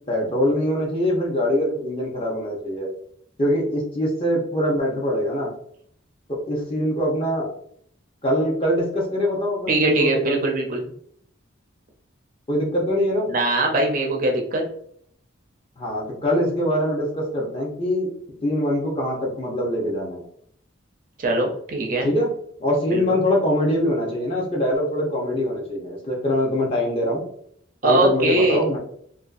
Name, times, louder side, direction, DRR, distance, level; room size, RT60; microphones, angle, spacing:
voice 1, 0.1-2.9 3.4-5.5 6.5-7.5 8.2-10.4 12.5-13.3 15.8-18.1 18.4-20.2 22.0-22.3 22.6-27.2 27.8-28.9, left 1 dB, 25° left, -2 dB, 0.6 m, -23 dB
voice 2, 9.7-10.9 13.3-14.6 21.2-22.1 22.9-23.0 27.8-28.6, right 2 dB, 40° right, 1 dB, 0.4 m, -21 dB
2.5 x 2.2 x 2.4 m, 0.66 s
head